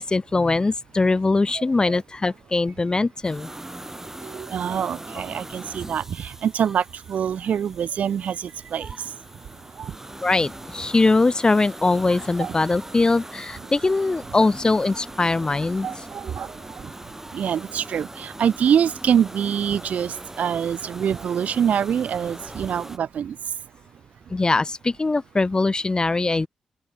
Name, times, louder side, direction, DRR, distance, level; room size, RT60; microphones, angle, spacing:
voice 1, 0.0-3.5 10.2-15.9 24.3-26.5, left 3 dB, 30° left, 0.9 m, -21 dB
voice 2, 1.6-2.0 4.2-8.9 9.8-9.9 12.4-12.6 15.8-16.9 17.3-23.4, right 8 dB, 70° right, 3.6 m, -25 dB
sound 1, 3.2-23.0, right 1 dB, 15° right, 7.4 m, -41 dB
open air
hypercardioid pair, 40°, 3 cm